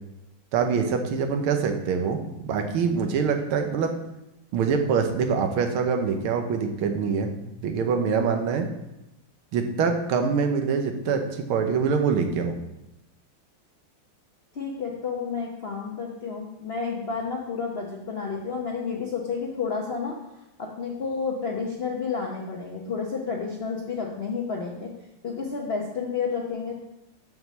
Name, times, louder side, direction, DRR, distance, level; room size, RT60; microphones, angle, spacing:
voice 1, 0.5-3.9 4.5-7.3 7.6-8.7 9.5-12.6, right 5 dB, 80° right, 5 dB, 1.7 m, -24 dB
voice 2, 14.5-20.2 20.6-24.9 25.2-26.8, left 5 dB, 60° left, -2 dB, 0.6 m, -31 dB
5.9 x 4.7 x 6.5 m, 0.91 s
omnidirectional pair, 2.3 m